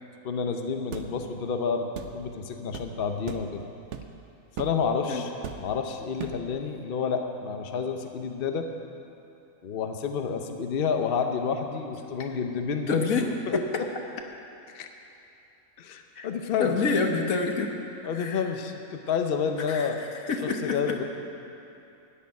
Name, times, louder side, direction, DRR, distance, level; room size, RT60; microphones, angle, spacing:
voice 1, 0.2-1.9 2.1-3.6 4.6-5.3 5.6-8.7 9.6-13.8 14.7-14.9 15.8-16.8 18.0-20.0 20.6-21.0, left 6 dB, 50° left, 5 dB, 0.9 m, -29 dB
sound 1, 0.9-1.1 2.0-2.2 2.7-2.9 3.3-3.5 3.9-4.2 4.6-4.8 5.4-5.8 6.2-6.5, right 7 dB, 60° right, 1.0 m, -37 dB
voice 2, 12.9-13.2 13.5-13.6 16.1-16.3 16.6-17.7 18.1-18.4 19.7-21.0, left 4 dB, 85° left, 3 dB, 1.6 m, -27 dB
13.0 x 6.7 x 9.5 m, 2.8 s
omnidirectional pair, 1.4 m